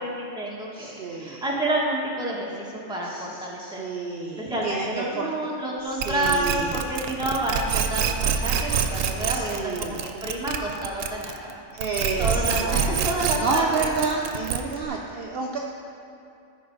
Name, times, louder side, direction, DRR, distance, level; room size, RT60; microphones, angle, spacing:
voice 1, 0.0-3.8 4.4-11.6 12.2-13.9, right 1 dB, 5° right, -4 dB, 1.1 m, -29 dB
voice 2, 0.7-1.4 3.0-5.3 5.8-6.9 9.3-10.0 11.7-15.6, right 4 dB, 60° right, 0 dB, 0.7 m, -30 dB
sound 1, 6.0-11.5 11.8-14.9, right 8 dB, 85° right, 1.0 m, -26 dB
13.5 x 5.1 x 3.9 m, 2.5 s
omnidirectional pair, 1.3 m